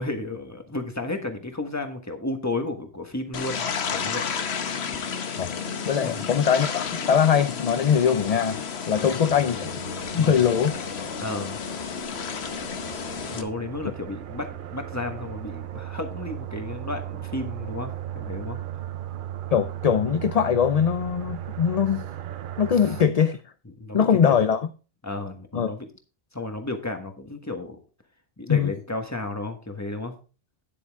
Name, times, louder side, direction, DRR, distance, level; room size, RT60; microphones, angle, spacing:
voice 1, 0.0-4.3 6.0-6.2 8.9-9.1 10.1-10.4 11.2-11.6 13.3-18.6 23.8-24.4 25.0-25.9 26.3-27.8 28.4-30.1, left 2 dB, 15° left, 1.4 m, -33 dB
sound 1, 3.3-13.4, left 6 dB, 80° left, 1.2 m, -32 dB
voice 2, 5.9-8.6 8.9-9.7 10.1-10.8 19.5-22.1 22.6-23.4 23.9-24.7 25.5-25.7 28.5-28.7, left 7 dB, 45° left, 0.5 m, -22 dB
sound 2, 9.3-23.1, right 12 dB, 60° right, 0.7 m, -37 dB
9.7 x 8.6 x 3.6 m
omnidirectional pair, 1.1 m